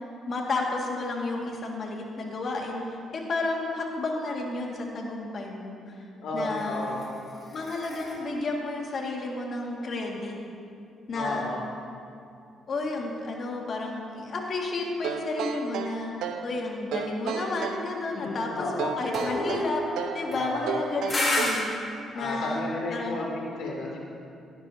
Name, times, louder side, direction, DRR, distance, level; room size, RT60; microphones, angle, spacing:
voice 1, 0.3-2.8 3.1-6.0 6.3-6.8 7.5-10.3 11.1-11.5 12.7-16.1 16.4-19.8 20.1-21.7 22.1-22.7 22.9-23.2, left 3 dB, 50° left, 0 dB, 1.9 m, -31 dB
voice 2, 6.2-6.9 11.1-11.6 18.1-18.9 20.3-20.7 22.1-24.0, left 2 dB, 75° left, -2 dB, 2.7 m, -33 dB
sound 1, 6.6-10.0 19.1-21.6, left 1 dB, 30° left, 3.0 m, -33 dB
sound 2, 15.0-16.5 16.9-17.9 18.8-20.2 20.7-21.7, right 7 dB, 85° right, 0.7 m, -32 dB
17.0 x 11.5 x 2.8 m, 2.5 s
cardioid pair, 90°, 0 cm